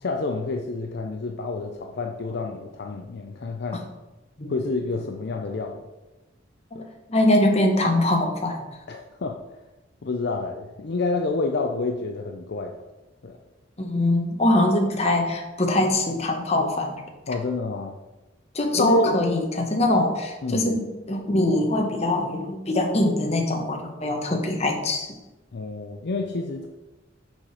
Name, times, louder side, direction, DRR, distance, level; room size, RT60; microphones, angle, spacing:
voice 1, 0.0-3.8 4.5-5.8 6.7-6.9 8.9-9.4 10.0-12.8 13.2-13.4 17.3-18.0 18.8-19.1 20.4-20.7 25.5-26.7, left 3 dB, 55° left, 3 dB, 0.5 m, -28 dB
voice 2, 6.7-8.6 13.8-17.0 18.5-25.1, left 1 dB, 35° left, 3 dB, 1.0 m, -23 dB
6.2 x 4.9 x 5.6 m, 1.1 s
head